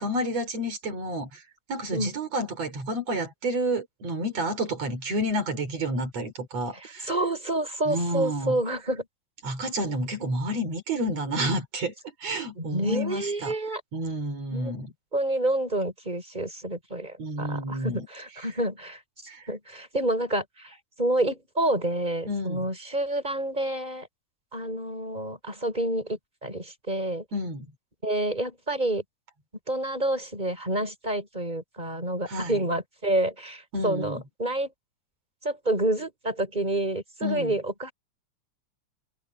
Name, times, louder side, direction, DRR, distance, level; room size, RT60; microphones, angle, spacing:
voice 1, 0.0-1.4 1.7-7.1 7.9-8.6 9.4-11.9 12.2-13.6 13.9-14.9 17.2-18.1 19.3-19.4 22.3-22.7 27.3-27.7 32.3-32.6 33.7-34.2 37.2-37.6, right 1 dB, 60° right, 6.2 m, -30 dB
voice 2, 7.1-9.1 10.2-10.3 12.6-13.8 14.5-14.7 15.1-19.0 19.5-24.1 24.5-27.2 28.0-29.0 29.7-34.7 35.4-37.9, right 1 dB, 15° right, 7.0 m, -28 dB
omnidirectional pair, 3.3 m